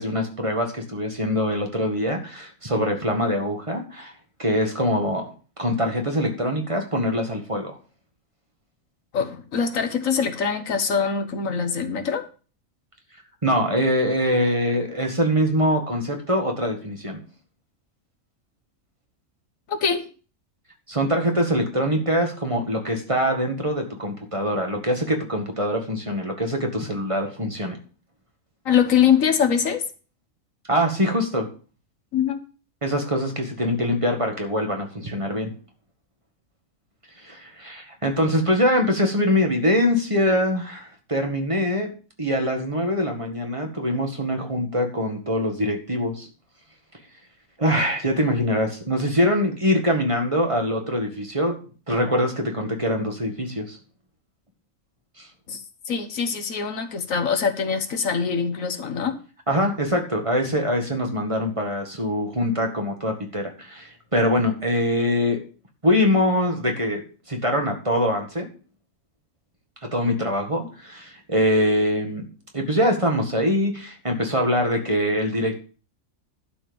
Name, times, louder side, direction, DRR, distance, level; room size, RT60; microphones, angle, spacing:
voice 1, 0.0-4.1 4.4-5.3 5.6-7.8 13.4-17.2 20.9-27.8 30.7-31.5 32.8-35.5 37.2-41.9 42.2-46.3 47.6-51.6 51.9-53.8 55.2-55.3 59.5-65.4 65.8-67.0 67.3-68.5 69.9-72.2 72.5-75.6, equal, 25° right, 2 dB, 1.8 m, -23 dB
voice 2, 9.1-12.2 19.7-20.0 28.6-29.8 32.1-32.4 55.5-59.2, left 7 dB, 80° left, 7 dB, 1.6 m, -23 dB
12.0 x 4.4 x 7.0 m, 0.37 s
omnidirectional pair, 1.4 m